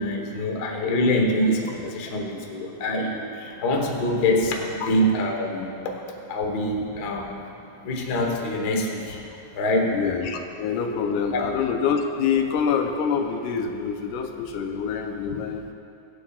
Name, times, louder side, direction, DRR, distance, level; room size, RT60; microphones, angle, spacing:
voice 1, 0.0-7.5 7.8-10.0 11.3-11.4, left 1 dB, 55° left, 1 dB, 1.1 m, -25 dB
voice 2, 9.9-15.7, left 6 dB, 85° left, 5 dB, 2.3 m, -26 dB
23.5 x 8.5 x 2.4 m, 2.6 s
omnidirectional pair, 3.6 m